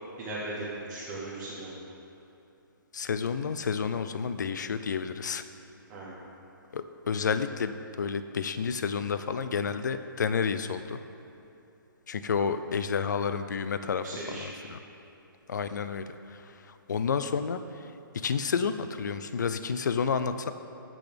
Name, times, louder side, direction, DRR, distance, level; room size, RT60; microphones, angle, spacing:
voice 1, 0.2-1.8 5.9-6.2 14.0-14.7, right 2 dB, 10° right, -8 dB, 0.8 m, -38 dB
voice 2, 2.9-5.4 6.7-11.0 12.1-14.8 15.5-16.0 16.9-17.6 18.2-20.5, left 6 dB, 55° left, 10 dB, 0.4 m, -30 dB
15.5 x 6.1 x 3.4 m, 2.9 s
hypercardioid pair, 180°, 12 cm